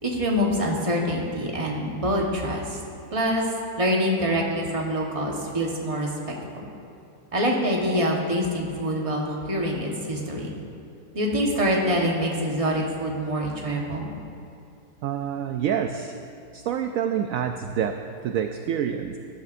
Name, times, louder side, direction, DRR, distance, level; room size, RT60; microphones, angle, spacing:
voice 1, 0.0-2.8 3.1-3.4 3.8-6.6 7.3-10.5 11.1-14.1, equal, 20° right, -1 dB, 1.2 m, -25 dB
voice 2, 15.0-16.2 16.5-19.2, right 8 dB, 70° right, 6 dB, 0.9 m, -27 dB
17.0 x 11.5 x 2.6 m, 2.5 s
omnidirectional pair, 1.7 m